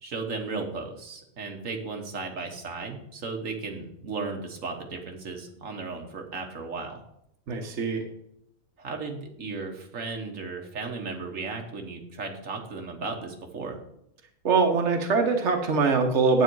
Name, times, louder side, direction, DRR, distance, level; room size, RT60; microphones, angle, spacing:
voice 1, 0.0-7.0 8.8-13.8, right 4 dB, 90° right, 3 dB, 1.7 m, -35 dB
voice 2, 7.5-8.0 14.4-16.4, right 4 dB, 65° right, 3 dB, 1.5 m, -23 dB
9.6 x 8.4 x 4.7 m, 0.77 s
omnidirectional pair, 1.3 m